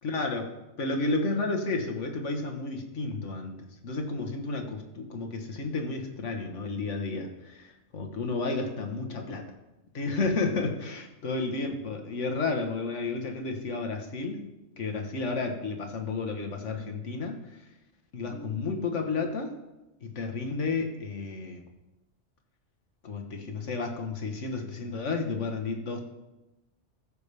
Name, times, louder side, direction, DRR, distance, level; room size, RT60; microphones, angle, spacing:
voice 1, 0.0-9.5 9.9-14.5 14.8-17.4 18.1-19.6 20.0-21.6 23.0-26.0, left 3 dB, 80° left, 3 dB, 1.6 m, -32 dB
14.5 x 7.0 x 3.4 m, 0.99 s
omnidirectional pair, 1.2 m